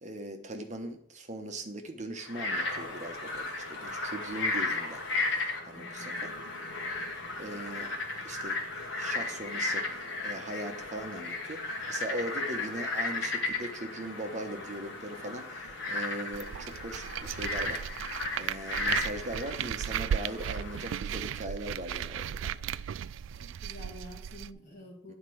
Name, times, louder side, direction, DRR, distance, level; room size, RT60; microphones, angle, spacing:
voice 1, 0.0-5.0 5.7-6.3 7.4-7.9 8.2-8.6 8.9-9.8 10.2-17.8 18.4-22.5 25.1-25.2, right 1 dB, 40° right, 5 dB, 1.1 m, -39 dB
Frog, 2.2-21.0, left 3 dB, 80° left, 1.6 m, -35 dB
voice 2, 5.7-6.3 23.4-25.1, left 1 dB, 35° left, -5 dB, 2.5 m, -49 dB
sound 1, 16.3-24.5, right 9 dB, 85° right, 0.3 m, -36 dB
9.1 x 4.4 x 6.3 m, 0.63 s
head